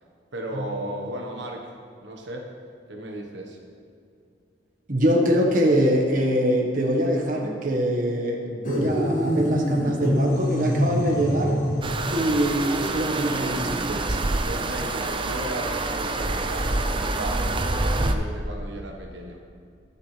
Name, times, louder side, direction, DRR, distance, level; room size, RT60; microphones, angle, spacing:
voice 1, 0.3-1.7 2.0-2.5 2.9-3.6 14.4-19.4, right 1 dB, 80° right, 1 dB, 1.3 m, -35 dB
voice 2, 4.9-11.6 12.1-14.2, equal, 50° right, 0 dB, 1.4 m, -23 dB
sound 1, 8.6-12.1, equal, 45° left, 1.9 m, -25 dB
sound 2, 11.8-18.1, right 2 dB, 30° right, 0.6 m, -26 dB
21.0 x 7.2 x 3.4 m, 2.4 s
head